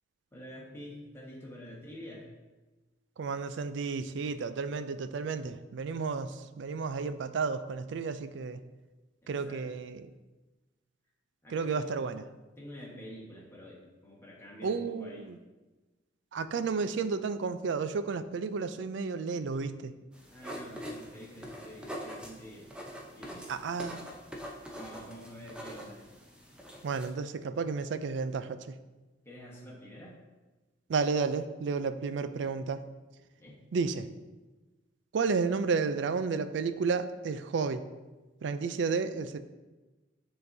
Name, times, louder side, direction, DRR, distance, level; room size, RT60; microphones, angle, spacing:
voice 1, 0.3-2.3 9.2-9.7 11.4-12.1 12.6-15.3 20.3-23.5 24.7-26.1 29.2-30.2 33.4-33.6, equal, 15° left, -4 dB, 1.4 m, -48 dB
voice 2, 3.2-8.6 9.3-10.0 11.5-12.2 14.6-15.4 16.3-19.9 23.5-24.1 26.8-28.8 30.9-32.9 33.7-34.1 35.1-37.9 38.4-39.4, right 5 dB, 65° right, 11 dB, 0.4 m, -32 dB
sound 1, 20.1-27.1, equal, 5° right, 0.7 m, -44 dB
9.4 x 3.8 x 2.7 m, 1.2 s
head